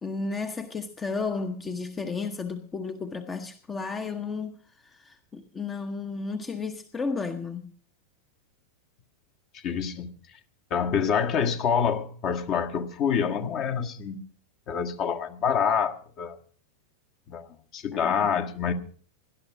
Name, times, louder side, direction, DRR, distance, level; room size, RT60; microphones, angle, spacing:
voice 1, 0.0-7.7 17.9-18.2, left 4 dB, 20° left, 1.0 m, -33 dB
voice 2, 9.6-10.1 10.7-14.2 14.7-16.4 17.3-17.5 17.7-18.7, left 7 dB, 35° left, 1.5 m, -26 dB
18.0 x 11.5 x 4.9 m
figure-of-eight pair, 90°, 0 cm